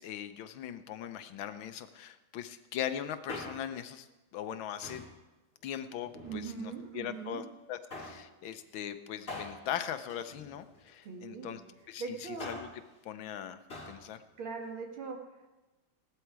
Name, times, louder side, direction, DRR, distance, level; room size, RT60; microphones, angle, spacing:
voice 1, 0.0-4.1 4.3-5.1 5.6-7.4 7.7-11.6 11.9-12.7 13.0-13.6 13.9-14.2, left 10 dB, 80° left, 10 dB, 1.6 m, -40 dB
Male speech man speaking, 3.1-3.9 4.8-5.2 6.0-6.8 7.9-8.3 9.3-10.9 12.2-12.8 13.7-14.0 14.3-14.4, left 2 dB, 30° left, 2.7 m, -44 dB
voice 2, 6.2-7.5 11.0-11.6 12.0-12.5 14.4-15.5, right 5 dB, 85° right, 2 dB, 2.6 m, -41 dB
17.0 x 12.0 x 4.7 m, 1.1 s
omnidirectional pair, 2.2 m